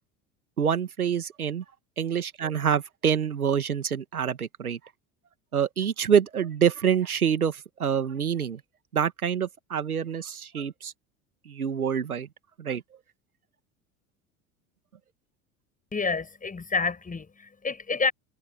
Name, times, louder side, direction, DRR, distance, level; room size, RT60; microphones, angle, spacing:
voice 1, 0.6-1.6 2.0-4.8 5.5-8.6 8.9-10.9 11.5-12.3 12.6-12.8, right 8 dB, 90° right, 1.9 m, -26 dB
voice 2, 15.9-18.1, left 4 dB, 20° left, 6.7 m, -28 dB
hypercardioid pair, 75°, 43 cm